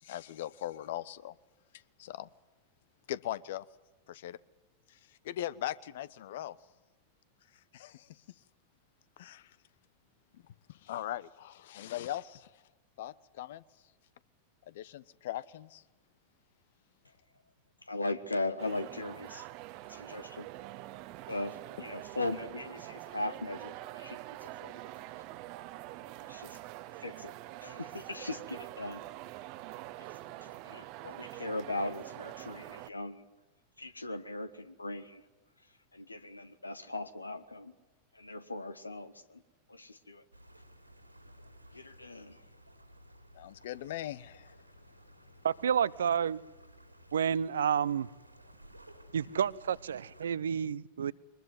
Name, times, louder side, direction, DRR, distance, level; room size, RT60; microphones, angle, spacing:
voice 1, 0.0-1.3 2.0-2.3 3.1-3.6 4.1-4.4 4.9-6.6 7.7-8.2 9.2-9.6 10.3-10.4 10.7-12.5 13.0-13.6 14.7-15.8 43.3-44.5, left 13 dB, 55° left, 19 dB, 1.0 m, -40 dB
voice 2, 17.9-19.5 19.9-20.5 21.3-24.9 26.3-26.6 27.0-27.3 27.6-29.0 30.0-30.1 30.4-33.2 33.8-35.2 35.9-37.7 38.2-39.4 39.7-40.2 41.7-42.4, left 2 dB, 80° left, 12 dB, 1.6 m, -39 dB
sound 1, 18.6-32.9, right 16 dB, 45° right, 1.1 m, -45 dB
sound 2, 40.3-50.3, equal, 90° right, 3.7 m, -56 dB
voice 3, 45.4-46.4 47.1-48.1 49.1-51.1, right 8 dB, 65° right, 19 dB, 0.7 m, -30 dB
23.5 x 21.0 x 9.5 m, 1.1 s
figure-of-eight pair, 90°, 0 cm